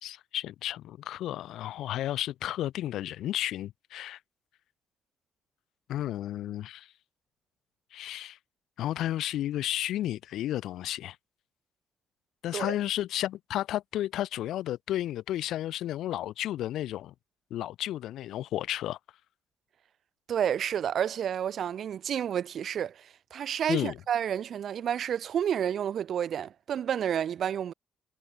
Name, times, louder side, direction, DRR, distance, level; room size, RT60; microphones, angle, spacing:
voice 1, 0.0-4.2 5.9-6.9 7.9-8.4 8.8-11.2 12.4-17.1 17.5-19.0 23.7-24.0, left 13 dB, 80° left, 0.6 m, -32 dB
voice 2, 20.3-27.7, right 9 dB, 65° right, 0.5 m, -30 dB
cardioid pair, 85°, 0 cm